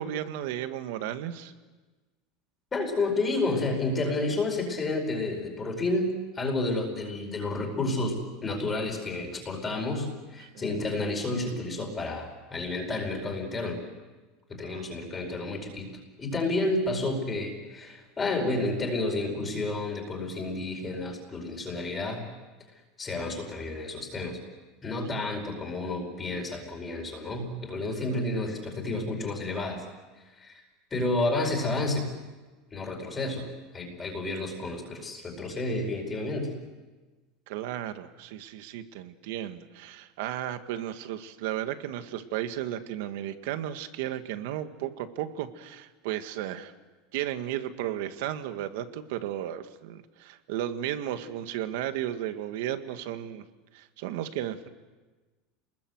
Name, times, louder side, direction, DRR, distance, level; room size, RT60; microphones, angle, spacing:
voice 1, 0.0-1.5 10.4-10.6 14.6-15.0 28.1-28.2 37.5-46.7 47.1-53.5 53.7-54.7, right 11 dB, 70° right, 9 dB, 1.8 m, -34 dB
voice 2, 2.7-13.8 14.5-15.9 16.2-22.2 23.0-24.4 24.8-29.8 30.4-30.6 30.9-32.0 32.7-33.5 33.7-36.5, left 2 dB, 15° left, 1 dB, 4.8 m, -30 dB
28.5 x 20.5 x 8.0 m, 1.3 s
supercardioid pair, 165°, 0 cm